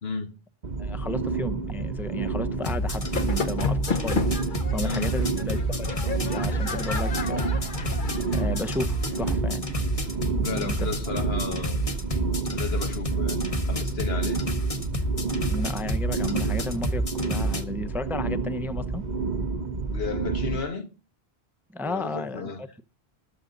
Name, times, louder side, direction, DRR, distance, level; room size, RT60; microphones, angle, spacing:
voice 1, 0.0-0.4 4.8-5.2 10.4-11.9 12.5-14.4 19.9-20.9 21.8-22.6, left 5 dB, 80° left, 1.8 m, -33 dB
sound 1, 0.6-20.6, right 4 dB, 45° right, 1.1 m, -30 dB
voice 2, 0.8-4.2 4.7-7.5 8.3-9.7 10.3-10.9 15.5-19.0 19.7-19.8 21.7-22.5, left 1 dB, ahead, 0.6 m, -34 dB
sound 2, 2.6-17.6, right 1 dB, 35° left, 1.3 m, -29 dB
sound 3, 2.9-9.3, left 4 dB, 55° left, 1.3 m, -33 dB
14.0 x 12.5 x 3.9 m
omnidirectional pair, 1.0 m